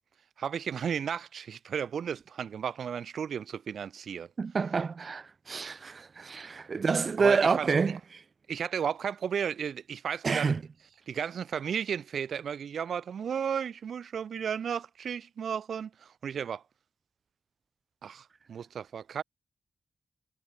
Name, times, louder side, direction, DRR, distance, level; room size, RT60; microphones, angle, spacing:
voice 1, 0.4-4.3 7.2-8.0 8.5-10.5 11.1-16.6 18.0-19.2, right 7 dB, 80° right, 4.9 m, -34 dB
voice 2, 4.4-8.2 10.2-10.6, right 5 dB, 60° right, 5.2 m, -28 dB
cardioid pair, 50°, 0 cm